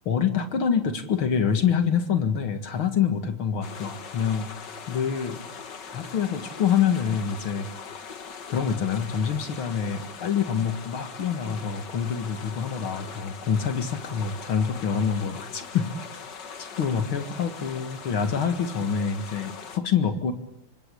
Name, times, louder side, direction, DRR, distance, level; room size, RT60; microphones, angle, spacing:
voice 1, 0.1-5.4 5.9-8.0 8.5-15.9 16.6-20.3, left 7 dB, 70° left, 9 dB, 2.7 m, -26 dB
sound 1, 3.6-19.8, left 6 dB, 55° left, 2.4 m, -41 dB
27.5 x 25.5 x 8.4 m, 0.73 s
omnidirectional pair, 2.3 m